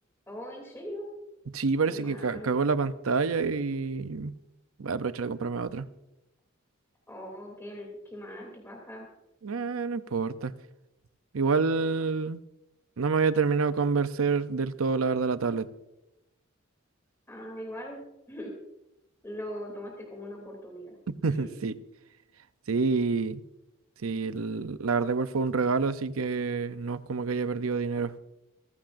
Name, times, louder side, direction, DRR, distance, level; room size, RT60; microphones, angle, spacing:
voice 1, 0.3-1.1 1.9-2.5 7.1-9.1 17.3-18.5 19.2-20.9 21.3-21.5, equal, 10° left, 3.0 m, -41 dB
voice 2, 1.5-4.3 4.8-5.9 9.4-10.5 11.3-12.4 13.0-15.7 21.1-21.7 22.7-23.4 24.0-28.1, right 4 dB, 80° right, 0.7 m, -27 dB
27.5 x 12.0 x 2.6 m
head